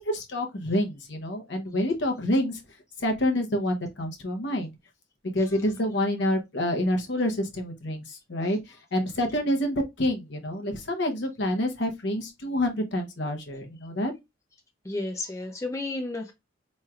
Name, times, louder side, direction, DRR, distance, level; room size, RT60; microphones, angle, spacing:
voice 1, 0.0-2.6 3.0-4.7 5.3-8.6 8.9-14.1, left 1 dB, 60° left, 0.8 m, -27 dB
voice 2, 14.8-16.3, left 2 dB, 15° left, 0.5 m, -32 dB
4.4 x 3.1 x 2.4 m
head